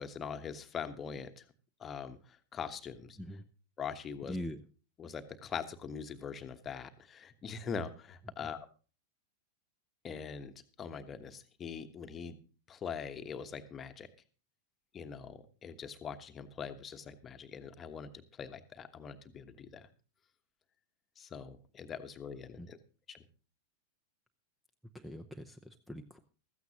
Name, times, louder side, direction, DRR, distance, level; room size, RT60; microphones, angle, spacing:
voice 1, 0.0-1.4 1.8-2.2 2.5-3.2 3.8-4.4 5.0-8.7 10.0-10.5 10.8-12.4 12.7-14.1 14.9-19.9 21.2-22.8 23.1-23.2, left 6 dB, 25° left, 9 dB, 1.2 m, -42 dB
voice 2, 4.3-4.6 22.6-22.7 24.9-26.2, equal, ahead, 10 dB, 0.8 m, -42 dB
15.5 x 14.0 x 2.9 m, 0.36 s
figure-of-eight pair, 90°, 0 cm